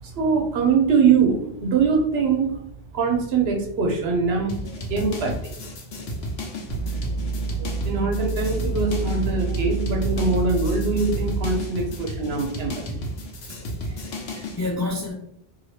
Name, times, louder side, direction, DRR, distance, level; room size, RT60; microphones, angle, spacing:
voice 1, 0.0-2.5 2.9-5.7 7.6-12.9, right 5 dB, 80° right, 1 dB, 1.0 m, -23 dB
sound 1, 4.5-14.6, left 1 dB, 75° left, 0.9 m, -33 dB
sound 2, 6.7-11.6, right 4 dB, 55° right, 0.7 m, -28 dB
voice 2, 13.5-15.1, left 2 dB, 25° left, -1 dB, 0.4 m, -31 dB
2.7 x 2.6 x 3.2 m, 0.69 s
omnidirectional pair, 1.0 m